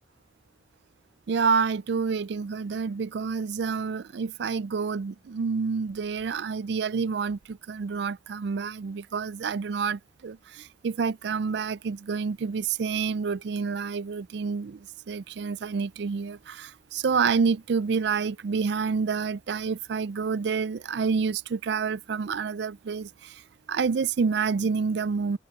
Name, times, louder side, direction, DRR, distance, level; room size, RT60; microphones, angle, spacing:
voice 1, 1.3-23.4 23.7-25.4, right 5 dB, 60° right, 0.4 m, -28 dB
head